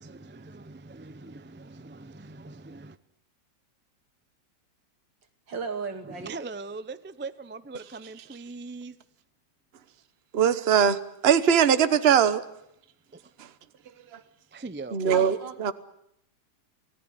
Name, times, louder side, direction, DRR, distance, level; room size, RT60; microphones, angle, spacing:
voice 1, 0.0-3.0 6.2-9.0 14.5-15.2, right 3 dB, 15° right, 0.3 m, -41 dB
voice 2, 5.5-6.4 15.1-15.7, right 4 dB, 80° right, 3.0 m, -35 dB
voice 3, 10.3-12.4 14.9-15.7, right 8 dB, 40° right, 1.2 m, -21 dB
27.0 x 18.0 x 10.0 m
omnidirectional pair, 1.9 m